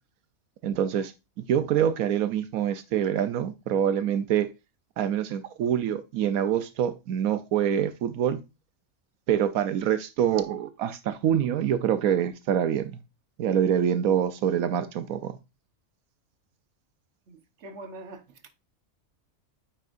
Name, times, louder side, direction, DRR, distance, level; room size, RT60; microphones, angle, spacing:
voice 1, 0.6-1.1 1.5-4.5 5.0-8.4 9.3-12.9 13.4-15.3, right 9 dB, 85° right, 1.1 m, -25 dB
voice 2, 17.3-18.5, right 2 dB, 55° right, 1.3 m, -44 dB
9.2 x 4.5 x 2.4 m
omnidirectional pair, 1.5 m